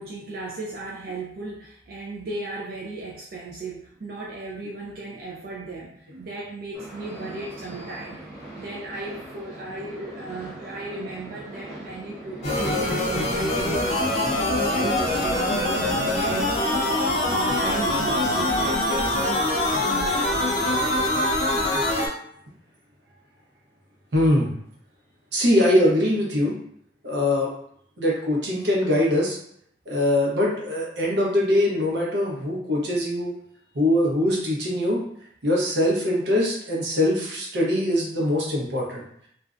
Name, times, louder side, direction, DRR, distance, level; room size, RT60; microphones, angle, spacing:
voice 1, 0.0-8.2 8.6-16.6 17.3-20.3, right 2 dB, 55° right, -4 dB, 0.4 m, -36 dB
sound 1, 6.7-21.4, right 2 dB, 5° right, 0.8 m, -40 dB
sound 2, 12.4-22.1, left 1 dB, 40° left, 0.5 m, -23 dB
voice 2, 24.1-24.5 25.3-26.5 27.0-27.5 28.0-29.4 29.9-33.3 33.7-35.0 35.4-39.0, left 1 dB, 85° right, -3 dB, 0.7 m, -22 dB
2.4 x 2.1 x 2.4 m, 0.68 s
head